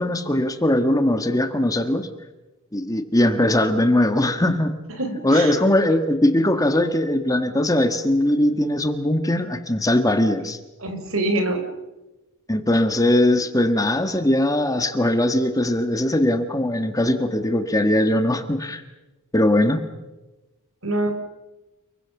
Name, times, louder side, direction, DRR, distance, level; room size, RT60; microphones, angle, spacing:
voice 1, 0.0-2.1 2.7-4.7 5.2-10.6 12.5-18.8 19.3-19.8, left 1 dB, 15° left, 8 dB, 1.5 m, -20 dB
voice 2, 5.0-5.6 10.8-11.7 20.8-21.1, right 2 dB, 65° right, 7 dB, 4.2 m, -24 dB
29.5 x 21.5 x 7.1 m, 1.1 s
head